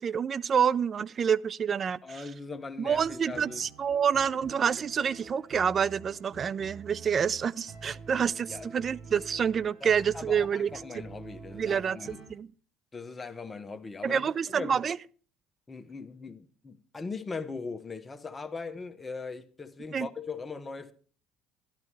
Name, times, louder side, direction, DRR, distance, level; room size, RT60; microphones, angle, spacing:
voice 1, 0.0-2.0 2.8-10.7 11.5-12.0 12.3-12.5 14.0-15.0 19.9-20.1, right 7 dB, 40° right, 0.4 m, -27 dB
voice 2, 2.0-3.6 7.8-8.0 8.4-8.7 9.1-9.2 9.8-12.2 12.9-14.2 14.5-14.8 15.7-20.9, left 4 dB, 25° left, 1.1 m, -40 dB
sound 1, 2.8-12.3, right 4 dB, 60° right, 5.2 m, -47 dB
12.5 x 12.0 x 3.3 m
hypercardioid pair, 70°, 0 cm